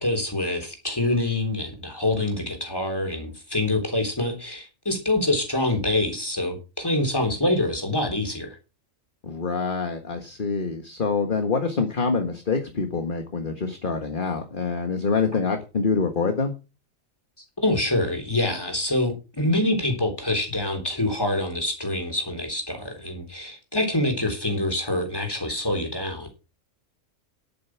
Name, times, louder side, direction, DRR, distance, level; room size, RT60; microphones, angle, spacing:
voice 1, 0.0-8.6 17.6-26.3, left 1 dB, 15° left, 4 dB, 3.7 m, -25 dB
voice 2, 9.2-16.5, left 4 dB, 40° left, 5 dB, 1.7 m, -26 dB
10.5 x 8.8 x 6.0 m, 0.32 s
omnidirectional pair, 1.4 m